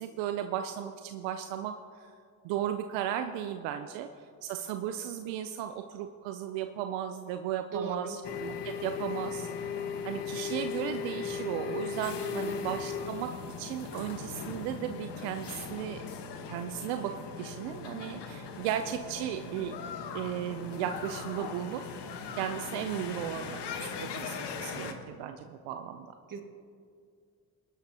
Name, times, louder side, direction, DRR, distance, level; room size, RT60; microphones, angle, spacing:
voice 1, 0.0-1.7 2.0-2.1 2.4-4.1 4.4-9.7 10.0-13.3 13.6-16.0 16.5-17.1 17.4-19.7 20.1-21.8 22.3-26.1, right 10 dB, 85° right, 8 dB, 0.6 m, -35 dB
voice 2, 7.7-8.2 12.2-12.7 26.3-26.4, right 4 dB, 45° right, 4 dB, 2.0 m, -38 dB
sound 1, 8.2-24.9, left 6 dB, 70° left, 1.3 m, -38 dB
21.5 x 12.0 x 2.8 m, 2.2 s
hypercardioid pair, 45°, 44 cm